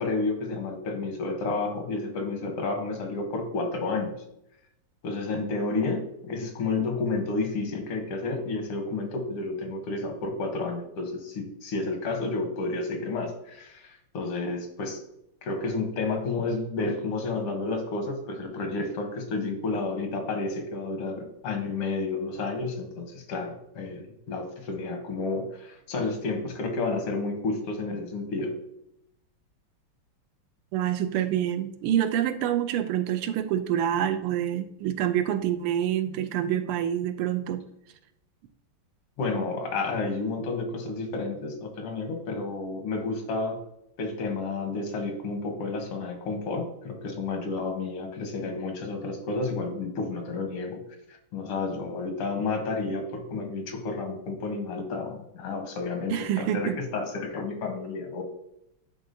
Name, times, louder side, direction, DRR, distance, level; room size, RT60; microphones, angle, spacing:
voice 1, 0.0-4.1 5.0-15.0 15.4-28.5 39.2-43.6 44.0-50.8 51.3-58.2, left 3 dB, 90° left, 4 dB, 2.0 m, -31 dB
voice 2, 30.7-37.6 56.1-56.8, right 10 dB, 85° right, 9 dB, 1.5 m, -27 dB
10.5 x 3.8 x 2.7 m, 0.80 s
omnidirectional pair, 2.4 m